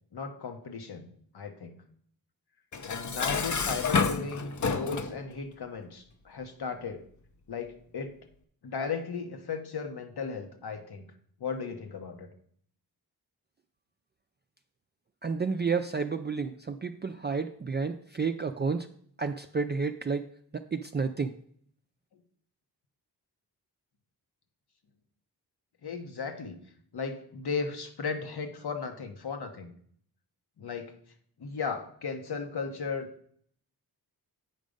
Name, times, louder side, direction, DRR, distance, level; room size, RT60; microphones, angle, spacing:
voice 1, 0.1-1.1 1.3-1.8 2.8-7.0 7.5-8.1 8.6-11.1 11.4-12.3 25.8-26.6 26.9-29.7 30.6-30.9 31.4-33.1, left 5 dB, 75° left, 6 dB, 1.2 m, -36 dB
Dishes pots and pans, 2.7-5.2, left 5 dB, 50° left, 0.7 m, -29 dB
voice 2, 15.2-18.9 19.2-21.4, right 5 dB, 25° right, 6 dB, 0.4 m, -31 dB
8.4 x 5.2 x 5.1 m, 0.62 s
wide cardioid pair, 75°, 39 cm